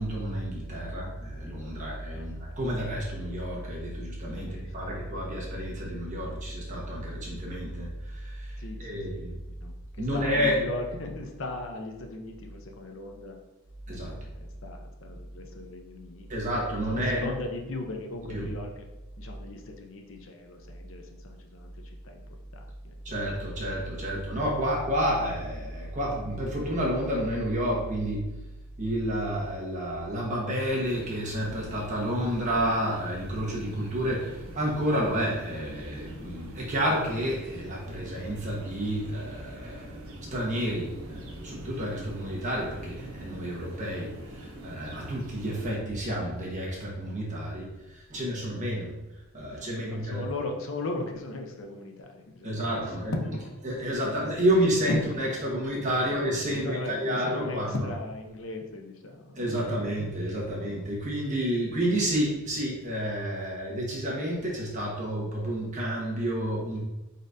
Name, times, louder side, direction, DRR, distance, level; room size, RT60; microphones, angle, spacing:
voice 1, 0.0-9.3 10.0-10.6 13.9-14.2 16.3-17.3 18.3-18.5 23.0-28.3 28.8-40.0 40.3-50.2 52.4-53.1 53.6-57.7 59.3-66.8, equal, 35° right, -4 dB, 1.2 m, -30 dB
voice 2, 2.1-2.6 4.3-5.0 8.6-9.2 9.6-13.4 13.9-16.3 16.7-18.9 19.2-22.9 48.7-48.8 49.4-52.5 52.9-53.6 54.0-54.1 54.9-55.3 56.0-56.1 56.4-59.5, left 2 dB, 65° left, 3 dB, 0.6 m, -38 dB
sound 1, 30.5-45.7, right 1 dB, 75° right, 0.8 m, -44 dB
4.8 x 4.1 x 2.6 m, 1.0 s
head